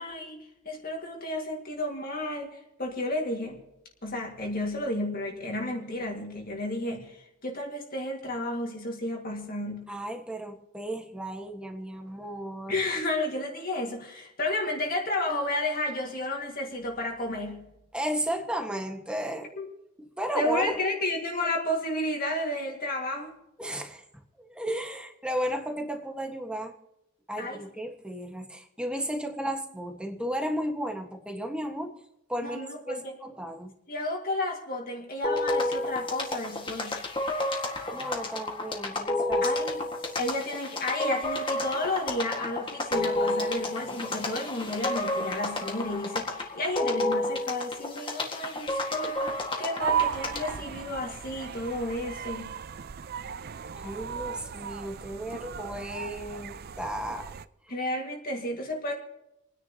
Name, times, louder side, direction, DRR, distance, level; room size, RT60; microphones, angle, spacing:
voice 1, 0.0-3.6 4.0-9.9 12.7-17.7 19.6-19.7 20.3-23.3 27.4-27.6 32.4-33.1 33.9-37.0 39.4-39.9 40.2-52.5 57.7-58.9, left 1 dB, 40° left, 1 dB, 2.0 m, -32 dB
voice 2, 9.9-12.7 17.9-19.5 20.2-20.8 23.6-24.0 24.4-26.7 27.3-31.9 32.3-32.9 33.2-33.7 37.9-39.4 53.7-57.3, equal, 5° right, 4 dB, 1.5 m, -34 dB
sound 1, 35.2-50.6, left 2 dB, 25° left, 1.8 m, -31 dB
sound 2, 49.8-57.5, right 8 dB, 45° right, 0.4 m, -35 dB
29.5 x 10.0 x 2.9 m, 0.86 s
head